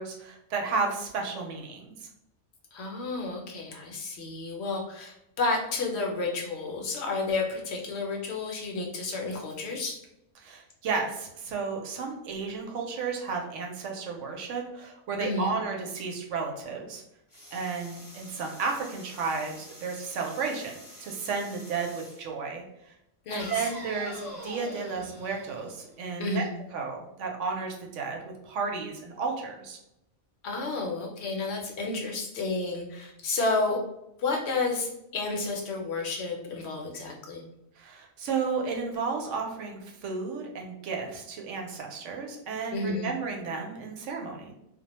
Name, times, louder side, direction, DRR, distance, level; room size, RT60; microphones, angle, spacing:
voice 1, 0.0-1.9 10.4-17.0 17.5-22.6 23.3-26.4 26.7-28.2 28.4-29.8 37.8-44.5, right 4 dB, 80° right, 1 dB, 0.9 m, -33 dB
voice 2, 2.7-10.0 15.2-15.5 23.3-23.7 26.2-26.5 30.4-33.8 34.2-37.4 42.7-43.1, left 3 dB, 65° left, 0 dB, 0.8 m, -31 dB
sound 1, 17.3-22.3 23.4-26.3, left 1 dB, 20° left, 0.7 m, -46 dB
2.2 x 2.1 x 2.9 m, 0.84 s
omnidirectional pair, 1.3 m